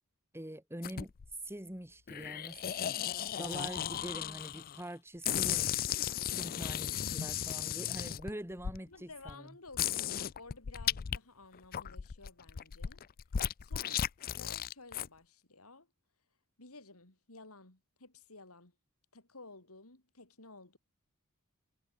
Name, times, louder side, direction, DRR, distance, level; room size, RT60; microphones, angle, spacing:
voice 1, 0.3-1.1 1.4-3.0 3.4-5.7 6.4-9.5, right 1 dB, 10° right, 4.6 m, -44 dB
sound 1, 0.8-1.3 2.1-4.8 5.2-8.8 9.3-9.4 9.7-11.2 11.5-15.1, left 10 dB, 40° left, 0.4 m, -35 dB
voice 2, 8.9-13.0 13.6-15.9 16.6-18.7 19.1-20.8, left 3 dB, 75° left, 4.8 m, -54 dB
head